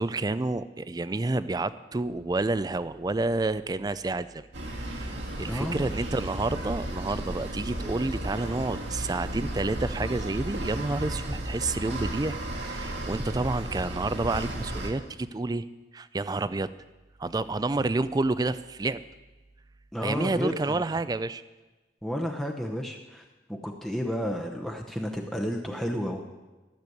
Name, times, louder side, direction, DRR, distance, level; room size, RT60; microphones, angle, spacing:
voice 1, 0.0-4.4 4.8-12.4 12.7-15.7 15.9-16.7 17.2-19.0 20.0-21.4, right 2 dB, 20° right, 15 dB, 0.4 m, -29 dB
sound 1, 4.5-14.9, right 1 dB, 70° right, 1.8 m, -34 dB
voice 2, 5.5-5.9 19.9-20.8 22.0-23.2 23.5-26.2, equal, 5° left, 1 dB, 0.8 m, -31 dB
13.5 x 6.9 x 7.8 m, 1.1 s
head